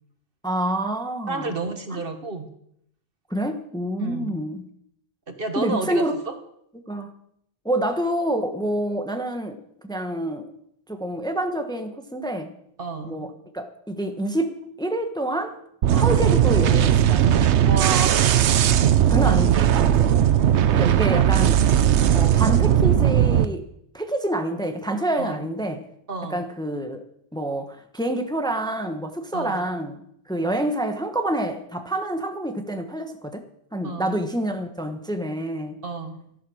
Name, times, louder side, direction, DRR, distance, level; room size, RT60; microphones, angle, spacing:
voice 1, 0.4-1.6 3.3-4.7 5.5-6.1 6.9-7.1 7.6-10.5 10.9-12.5 13.0-15.6 16.0-17.6 19.1-20.2 20.7-21.7 22.1-23.7 23.9-25.9 26.3-27.0 27.3-30.0 30.3-33.4 33.7-35.8, right 1 dB, 5° left, 6 dB, 1.1 m, -27 dB
voice 2, 1.3-2.5 4.0-4.4 5.3-6.3 12.8-13.3 15.9-16.3 17.6-18.5 19.2-19.4 20.0-20.5 25.2-25.4 26.1-26.4 29.3-29.6 33.8-34.2 35.8-36.2, right 3 dB, 55° right, 7 dB, 1.6 m, -31 dB
sound 1, 15.8-23.5, right 10 dB, 85° right, 1.0 m, -18 dB
13.5 x 11.0 x 6.3 m, 0.71 s
omnidirectional pair, 1.1 m